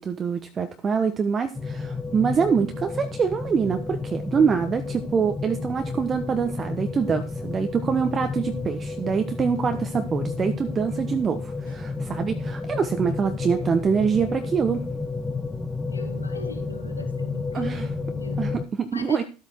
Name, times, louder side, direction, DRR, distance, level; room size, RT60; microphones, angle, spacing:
voice 1, 0.0-14.8 17.5-17.9 18.4-19.2, right 6 dB, 30° right, 7 dB, 1.2 m, -25 dB
sound 1, 1.5-18.7, left 3 dB, 10° left, 1.2 m, -31 dB
voice 2, 15.9-17.7 18.0-18.5 18.9-19.2, left 3 dB, 90° left, 8 dB, 1.3 m, -41 dB
13.0 x 8.2 x 4.5 m, 0.33 s
figure-of-eight pair, 70°, 0 cm